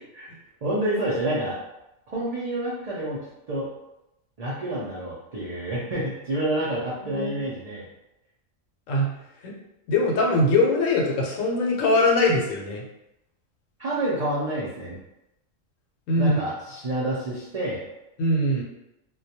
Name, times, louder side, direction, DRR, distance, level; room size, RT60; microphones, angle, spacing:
voice 1, 0.6-1.6 2.1-3.7 4.4-7.9 13.8-15.0 16.2-17.8, right 1 dB, 65° right, -7 dB, 0.3 m, -28 dB
voice 2, 7.0-7.3 8.9-9.1 9.4-9.5 9.9-12.8 16.1-16.4 18.2-18.6, left 2 dB, 80° left, -1 dB, 1.0 m, -22 dB
2.2 x 2.2 x 2.7 m, 0.88 s
omnidirectional pair, 1.3 m